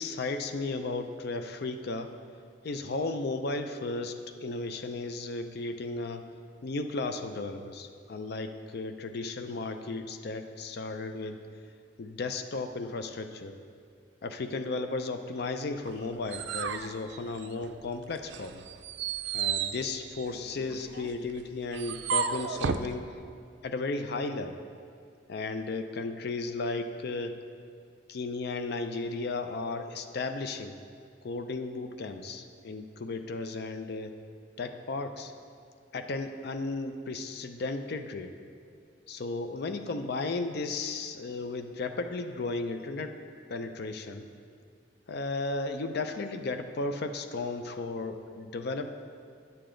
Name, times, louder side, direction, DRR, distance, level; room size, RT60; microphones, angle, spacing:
voice 1, 0.0-2.1 2.6-6.2 6.6-11.4 12.0-13.6 14.2-18.6 19.3-23.1 23.6-24.6 25.3-27.3 28.1-30.8 31.2-34.2 34.6-35.3 35.9-38.3 39.1-43.2 43.5-44.3 45.1-48.9, left 3 dB, 60° left, 8 dB, 0.5 m, -34 dB
sound 1, 15.9-17.9 18.3-22.9, right 7 dB, 65° right, 0.4 m, -34 dB
10.5 x 6.8 x 3.8 m, 2.3 s
head